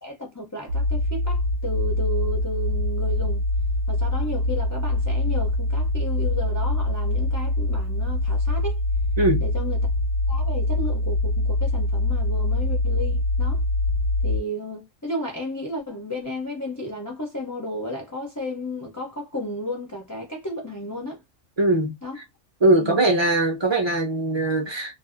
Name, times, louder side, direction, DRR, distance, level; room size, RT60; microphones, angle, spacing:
voice 1, 0.0-3.4 3.9-8.8 9.4-9.9 10.3-13.6 14.2-21.2 22.0-22.2 22.8-23.0, equal, 25° left, 0.4 m, -33 dB
sound 1, 0.7-14.4, left 2 dB, 80° right, 1.0 m, -24 dB
voice 2, 21.6-22.0 22.6-25.0, right 2 dB, 30° right, 0.6 m, -21 dB
2.6 x 2.4 x 2.4 m
omnidirectional pair, 1.3 m